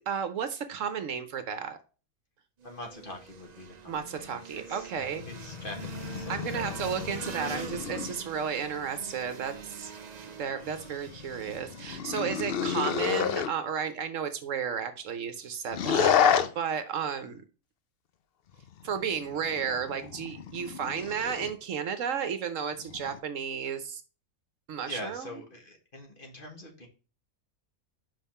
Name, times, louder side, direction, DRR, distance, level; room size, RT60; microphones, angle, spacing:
voice 1, 0.1-1.8 3.9-5.2 6.3-9.9 10.4-17.4 18.8-24.0 24.7-25.4, right 7 dB, 65° right, 10 dB, 1.1 m, -33 dB
voice 2, 2.6-4.9 5.3-6.8 7.5-8.2 17.2-17.4 24.8-26.9, left 1 dB, 40° left, 2 dB, 1.7 m, -44 dB
sound 1, 2.6-12.4, right 6 dB, 45° right, 0.5 m, -45 dB
sound 2, 5.0-8.2 10.6-13.5 15.7-16.5 18.5-21.6 22.7-23.2, left 8 dB, 60° left, 0.7 m, -31 dB
5.6 x 5.5 x 4.2 m, 0.35 s
omnidirectional pair, 1.5 m